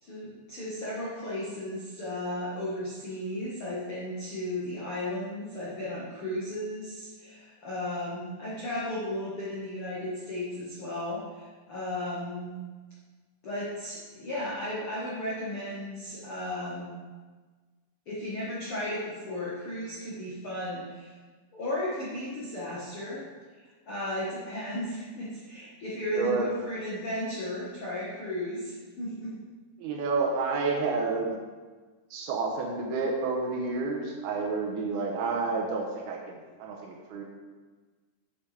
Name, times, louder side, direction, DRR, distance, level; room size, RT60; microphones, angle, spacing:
voice 1, 0.0-12.5 13.4-16.9 18.1-21.1 21.5-23.2 23.5-29.3, left 1 dB, 70° left, -7 dB, 1.3 m, -35 dB
voice 2, 26.1-26.5 29.8-31.4 32.1-37.2, right 4 dB, 75° right, 0 dB, 2.6 m, -30 dB
8.7 x 8.3 x 3.4 m, 1.4 s
omnidirectional pair, 4.9 m